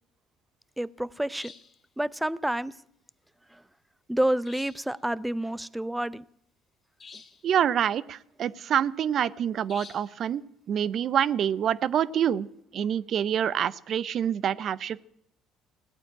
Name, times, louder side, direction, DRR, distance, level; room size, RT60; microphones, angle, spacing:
voice 1, 0.8-1.5 2.0-2.7 3.5-3.6 4.1-6.2, right 1 dB, 5° right, 20 dB, 0.6 m, -29 dB
sound 1, 1.3-1.8 4.4-5.0 7.0-7.5 9.7-10.2, left 5 dB, 40° left, 2.3 m, -47 dB
voice 2, 7.4-10.4 10.7-12.5 12.7-15.1, right 9 dB, 55° right, 19 dB, 0.6 m, -26 dB
17.0 x 9.2 x 8.7 m, 0.74 s
supercardioid pair, 75°, 0 cm